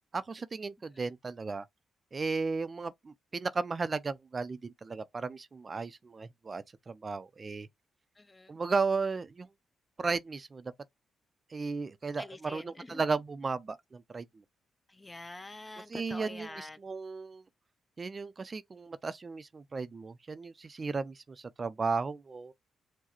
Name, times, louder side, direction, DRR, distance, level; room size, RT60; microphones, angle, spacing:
voice 1, 0.1-1.7 2.1-7.7 8.5-9.5 10.0-10.7 11.5-14.4 15.9-17.4 18.0-22.5, right 4 dB, 40° right, 0.5 m, -35 dB
voice 2, 8.2-8.5 12.2-13.0 14.9-16.8, left 2 dB, 20° left, 0.6 m, -46 dB
4.7 x 2.1 x 4.3 m
supercardioid pair, 55°, 0 cm